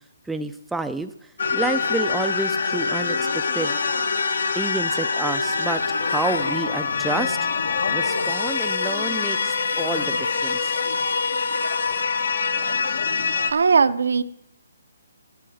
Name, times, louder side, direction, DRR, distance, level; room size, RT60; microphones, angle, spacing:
voice 1, 0.3-1.1 1.5-3.2 3.5-3.8 4.6-7.4 7.9-10.7, right 2 dB, 5° right, 8 dB, 0.4 m, -29 dB
sound 1, 1.4-13.5, left 4 dB, 70° left, 1.1 m, -24 dB
voice 2, 13.5-14.2, right 5 dB, 75° right, 12 dB, 0.7 m, -18 dB
8.4 x 7.7 x 7.8 m, 0.73 s
hypercardioid pair, 160°, 0 cm